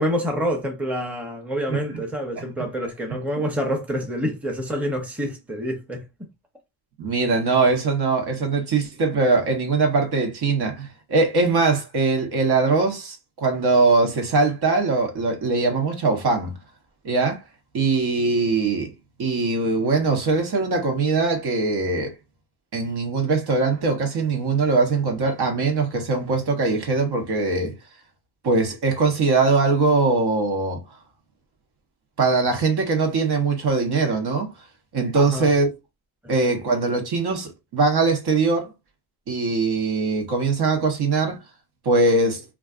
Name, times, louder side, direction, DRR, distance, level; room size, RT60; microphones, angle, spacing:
voice 1, 0.0-6.0 35.1-35.5, equal, 5° right, 0.7 m, -27 dB
voice 2, 1.7-2.0 2.4-2.5 3.3-3.4 7.0-16.6 17.0-17.4 17.7-18.9 19.2-22.1 22.7-27.7 28.4-30.8 32.2-34.5 34.9-35.7 36.3-38.7 39.3-41.4 41.8-42.4, right 3 dB, 65° right, 1.1 m, -21 dB
3.8 x 2.4 x 2.4 m
wide cardioid pair, 140°, 42 cm